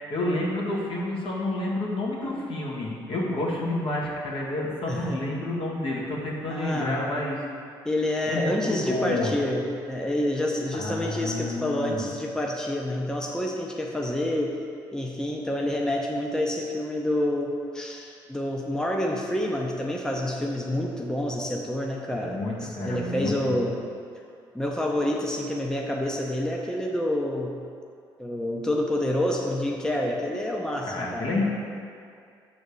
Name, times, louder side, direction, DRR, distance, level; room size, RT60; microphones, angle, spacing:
voice 1, 0.0-7.4 8.3-9.3 10.7-12.0 22.1-23.5 30.9-31.4, left 2 dB, 65° left, -4 dB, 1.8 m, -29 dB
voice 2, 4.9-5.2 6.5-7.0 7.8-14.6 14.9-23.8 24.5-27.6 28.2-31.4, left 1 dB, 5° left, -1 dB, 0.9 m, -28 dB
6.9 x 4.0 x 6.5 m, 2.4 s
supercardioid pair, 70°, 10 cm